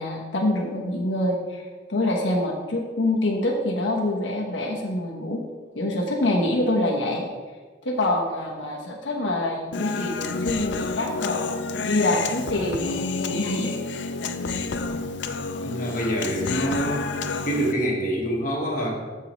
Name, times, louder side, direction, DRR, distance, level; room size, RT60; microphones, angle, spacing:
voice 1, 0.0-1.6 1.9-5.4 5.8-7.3 7.8-11.5 11.8-13.7, left 1 dB, 85° left, -1 dB, 1.1 m, -25 dB
Human voice, 9.7-17.7, left 4 dB, 70° left, 0.5 m, -29 dB
voice 2, 15.6-17.0 17.4-19.2, right 1 dB, 45° left, -2 dB, 1.5 m, -26 dB
13.5 x 4.7 x 3.1 m, 1.4 s
head